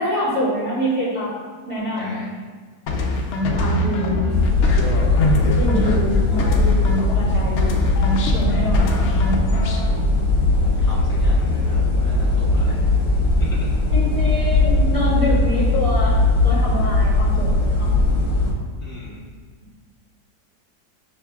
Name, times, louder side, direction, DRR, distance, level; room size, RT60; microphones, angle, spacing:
voice 1, 0.0-1.3 1.7-2.2 3.6-4.2 5.6-7.9 8.3-8.9 13.9-17.9, equal, 75° right, -10 dB, 2.1 m, -26 dB
voice 2, 1.9-2.3 5.8-6.0 10.5-13.0 13.4-13.7 18.8-19.2, left 1 dB, 20° left, -11 dB, 1.5 m, -39 dB
sound 1, 2.9-7.3 7.6-9.9, left 2 dB, 75° left, 0.6 m, -22 dB
sound 2, 4.3-18.5, left 2 dB, 60° left, 1.0 m, -19 dB
6.4 x 2.7 x 2.3 m, 1.5 s
omnidirectional pair, 1.7 m